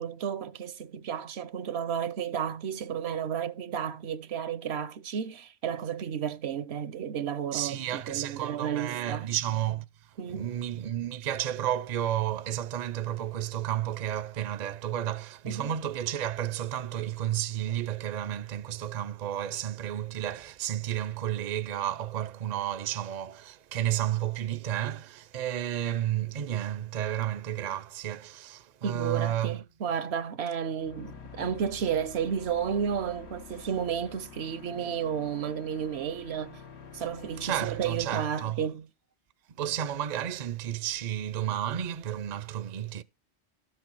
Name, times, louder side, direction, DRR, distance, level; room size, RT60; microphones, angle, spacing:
voice 1, 0.0-9.3 10.2-10.5 15.5-15.7 28.8-36.6 36.9-38.9, right 8 dB, 70° right, 0.9 m, -32 dB
voice 2, 7.5-9.8 10.3-29.6 37.4-38.6 39.5-43.0, right 11 dB, 50° right, 0.6 m, -32 dB
sound 1, 30.8-38.1, left 6 dB, 75° left, 1.4 m, -48 dB
12.5 x 6.4 x 4.6 m
omnidirectional pair, 1.1 m